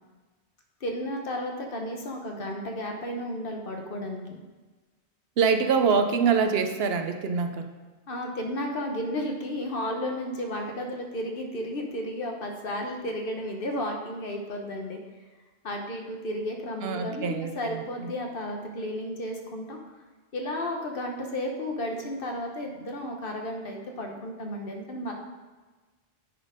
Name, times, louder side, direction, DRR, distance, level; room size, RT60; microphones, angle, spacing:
voice 1, 0.8-4.4 8.1-15.0 15.6-19.8 20.3-25.1, left 1 dB, 60° left, 2 dB, 1.2 m, -33 dB
voice 2, 5.4-7.7 16.8-18.1, right 5 dB, 70° right, 7 dB, 0.9 m, -25 dB
9.8 x 4.4 x 4.9 m, 1.3 s
omnidirectional pair, 1.1 m